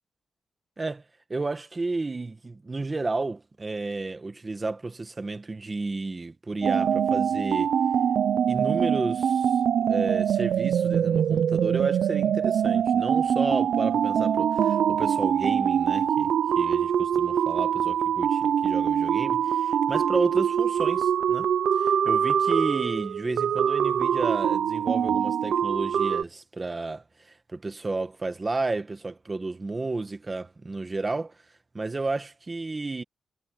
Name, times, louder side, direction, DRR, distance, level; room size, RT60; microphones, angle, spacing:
voice 1, 1.3-7.7 8.5-9.6 9.9-21.5 21.8-31.4 31.7-33.0, right 3 dB, 25° right, 1.6 m, -32 dB
sound 1, 6.6-26.2, right 8 dB, 75° right, 0.7 m, -24 dB
wide cardioid pair, 135°, 0 cm